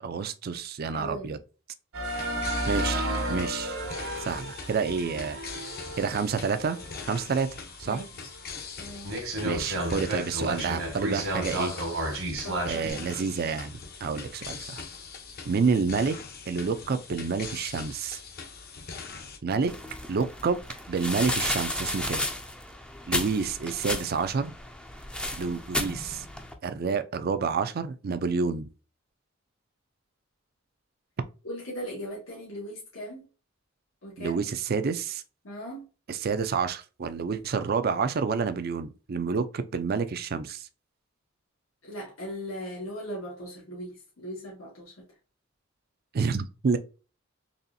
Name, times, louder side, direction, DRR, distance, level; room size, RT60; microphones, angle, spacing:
voice 1, 0.0-1.4 2.7-3.8 4.2-5.4 6.0-6.8 7.1-8.0 9.4-11.8 12.7-14.8 15.5-16.2 16.5-18.2 19.4-19.7 20.1-20.6 20.9-22.2 23.1-24.5 25.4-26.2 26.6-28.7 34.2-35.2 36.1-40.7 46.1-46.8, right 5 dB, 50° right, 0.4 m, -29 dB
voice 2, 0.9-1.4 7.8-8.3 8.8-9.2 12.4-13.1 31.4-33.2 34.0-34.4 35.4-35.9 41.8-44.9, equal, 85° left, 1.6 m, -39 dB
sound 1, 1.9-7.3 7.8-7.9 8.5-8.6 9.0-12.9, right 1 dB, 70° right, 1.4 m, -32 dB
sound 2, 2.0-19.4, left 5 dB, 50° left, 0.7 m, -42 dB
sound 3, 19.7-26.5, left 1 dB, 5° left, 0.5 m, -33 dB
4.1 x 3.1 x 2.6 m
head